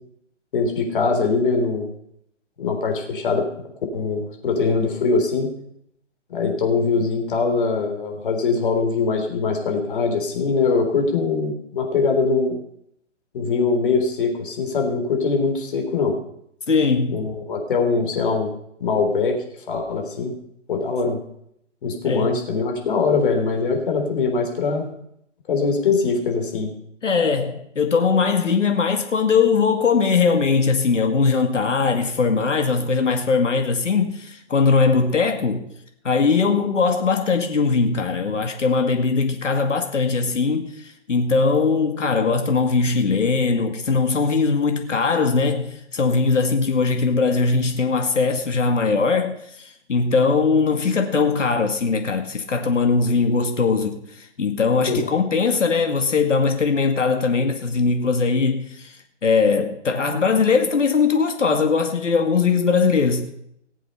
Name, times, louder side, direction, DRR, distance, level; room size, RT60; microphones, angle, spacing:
voice 1, 0.5-1.9 2.6-3.6 3.9-5.5 6.3-12.6 13.3-16.2 17.1-18.5 18.8-19.4 19.7-20.3 20.7-21.2 21.8-24.9 25.5-26.7 54.9-55.1, left 4 dB, 45° left, 3.8 m, -22 dB
voice 2, 16.7-17.3 22.1-22.4 27.0-35.7 36.0-63.3, left 4 dB, 80° left, 2.2 m, -20 dB
19.0 x 7.8 x 5.6 m
hypercardioid pair, 155°, 36 cm